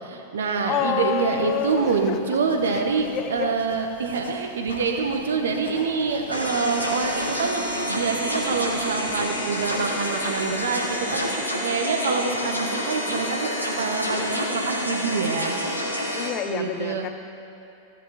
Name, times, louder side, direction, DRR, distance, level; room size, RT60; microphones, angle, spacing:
voice 1, 0.0-7.6 7.9-13.5 13.8-15.6 16.5-17.1, right 5 dB, 65° right, 4 dB, 1.0 m, -26 dB
sound 1, 0.5-11.3, left 1 dB, 70° left, 1.4 m, -45 dB
voice 2, 0.6-2.2 2.7-3.6 16.2-17.1, left 9 dB, 35° left, 9 dB, 0.5 m, -28 dB
sound 2, 6.3-16.3, equal, 90° left, 1.1 m, -28 dB
15.0 x 9.0 x 3.1 m, 2.7 s
figure-of-eight pair, 90°, 0 cm